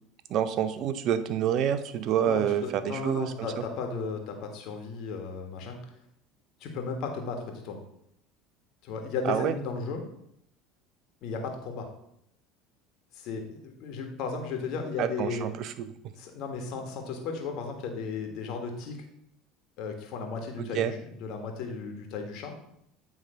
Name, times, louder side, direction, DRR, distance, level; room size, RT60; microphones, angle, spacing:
voice 1, 0.3-3.5 9.2-9.5 15.0-15.9 20.6-20.9, right 9 dB, 55° right, 12 dB, 0.6 m, -28 dB
voice 2, 2.2-5.8 6.6-7.8 8.8-10.0 11.2-11.9 13.1-15.5 16.1-19.0 19.8-22.5, left 4 dB, 60° left, 3 dB, 1.6 m, -35 dB
9.0 x 3.5 x 5.0 m, 0.76 s
supercardioid pair, 90°, 0 cm